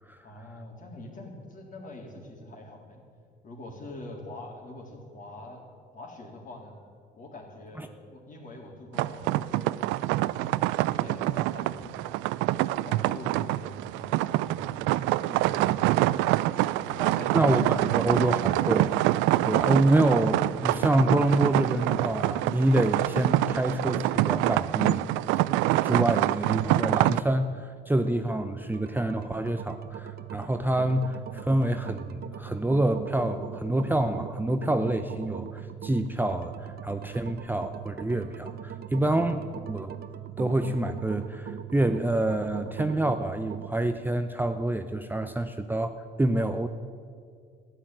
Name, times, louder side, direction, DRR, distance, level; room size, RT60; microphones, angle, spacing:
voice 1, 0.2-3.0 3.4-6.8 7.1-9.7 10.2-12.2 12.7-16.3 16.8-18.5, left 1 dB, 45° left, 0 dB, 3.7 m, -44 dB
sound 1, 8.9-27.2, right 17 dB, 90° right, 0.4 m, -26 dB
voice 2, 17.3-18.9 19.4-25.0 25.8-39.9 40.4-46.7, right 1 dB, 10° right, 7 dB, 0.7 m, -27 dB
sound 2, 28.6-44.0, right 10 dB, 55° right, 1.0 m, -40 dB
13.0 x 10.0 x 9.1 m, 2.2 s
supercardioid pair, 80°, 19 cm